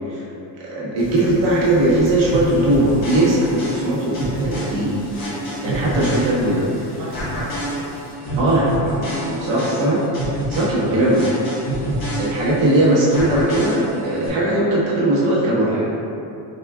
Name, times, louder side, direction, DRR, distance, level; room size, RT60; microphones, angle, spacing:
voice 1, 0.6-4.9 5.6-6.6 8.4-10.0 10.5-11.3 12.2-15.7, right 1 dB, 75° right, -6 dB, 1.2 m, -19 dB
sound 1, 1.0-8.1, equal, 30° left, 0.9 m, -38 dB
sound 2, 2.3-6.8 7.1-12.8 13.1-14.3, right 1 dB, 50° left, 1.4 m, -27 dB
voice 2, 5.8-7.6 14.9-15.9, right 2 dB, 40° right, -8 dB, 0.8 m, -33 dB
4.9 x 3.6 x 2.3 m, 2.7 s
cardioid pair, 170°, 45 cm